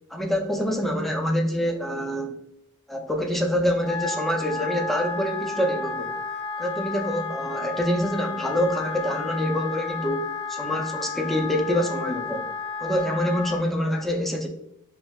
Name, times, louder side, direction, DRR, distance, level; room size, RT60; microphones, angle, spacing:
voice 1, 0.1-2.3 2.9-6.1 6.6-12.5 12.8-14.5, equal, ahead, 1 dB, 0.4 m, -26 dB
Wind instrument woodwind instrument, 3.7-13.6, left 4 dB, 55° left, 0.7 m, -32 dB
5.7 x 2.5 x 2.3 m, 0.82 s
head